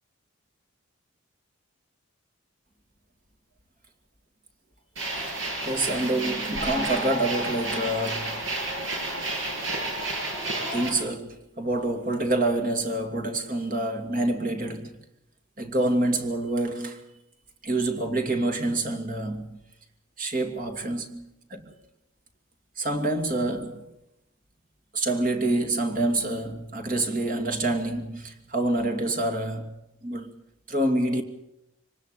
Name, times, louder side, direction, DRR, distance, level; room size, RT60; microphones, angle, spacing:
sound 1, 5.0-10.9, right 2 dB, 65° right, 7.9 m, -30 dB
voice 1, 5.6-8.4 10.7-15.0 15.6-17.1 17.6-19.6 20.2-21.7 22.8-23.9 24.9-30.3 30.7-31.2, right 2 dB, 40° right, 2.7 m, -27 dB
24.5 x 19.5 x 6.8 m
head